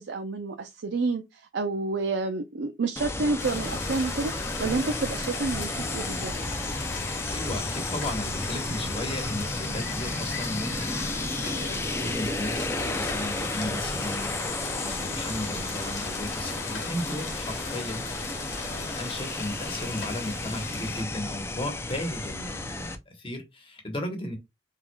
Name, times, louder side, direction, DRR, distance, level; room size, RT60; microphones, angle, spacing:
voice 1, 0.0-4.3 4.6-6.3, right 3 dB, 70° right, 0.5 m, -29 dB
sound 1, 3.0-23.0, left 2 dB, 15° left, 0.4 m, -33 dB
sound 2, 3.4-21.0, left 4 dB, 85° left, 1.9 m, -38 dB
voice 2, 7.3-24.3, left 1 dB, 30° left, 1.2 m, -35 dB
4.6 x 3.6 x 2.3 m
head